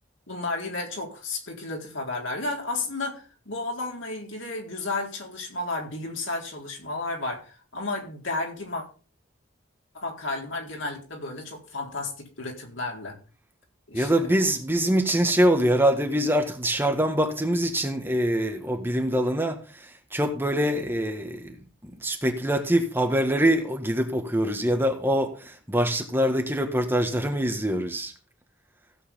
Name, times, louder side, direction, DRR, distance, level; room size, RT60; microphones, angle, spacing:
voice 1, 0.3-8.8 9.9-13.2 13.9-14.3, left 2 dB, 75° left, 4.1 m, -32 dB
voice 2, 13.9-28.1, right 1 dB, 10° right, 1.6 m, -24 dB
16.5 x 7.8 x 3.7 m
head